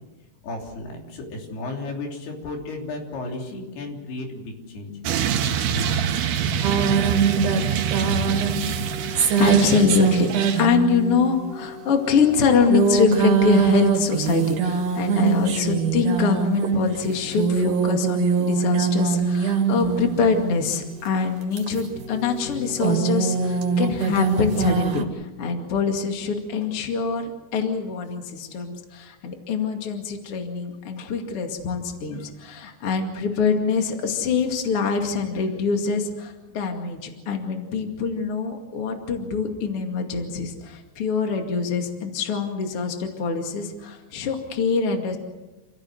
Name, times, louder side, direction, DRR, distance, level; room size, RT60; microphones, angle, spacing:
voice 1, 0.4-4.9, left 2 dB, 90° left, 1 dB, 5.4 m, -34 dB
sound 1, 5.1-10.7, right 8 dB, 85° right, 3.3 m, -25 dB
sound 2, 6.6-20.7 21.4-25.0, right 6 dB, 60° right, 3.3 m, -23 dB
voice 2, 8.8-45.2, left 5 dB, 40° left, 3 dB, 2.8 m, -24 dB
28.0 x 16.5 x 7.9 m, 1.1 s
omnidirectional pair, 4.4 m